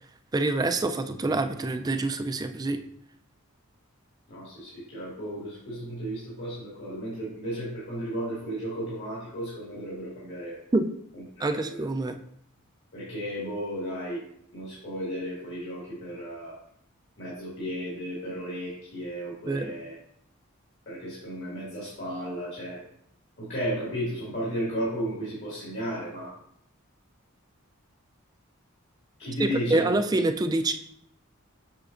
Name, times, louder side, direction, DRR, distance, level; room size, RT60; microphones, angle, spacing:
voice 1, 0.3-2.8 10.7-10.9 11.4-12.2 19.5-19.7 29.4-30.7, right 2 dB, 20° right, 8 dB, 0.3 m, -26 dB
voice 2, 4.3-10.6 11.4-11.8 12.9-14.2 14.5-16.5 17.2-20.0 20.9-22.8 23.4-26.3 29.2-30.0, equal, 55° left, -7 dB, 2.1 m, -34 dB
6.9 x 6.7 x 2.5 m, 0.71 s
head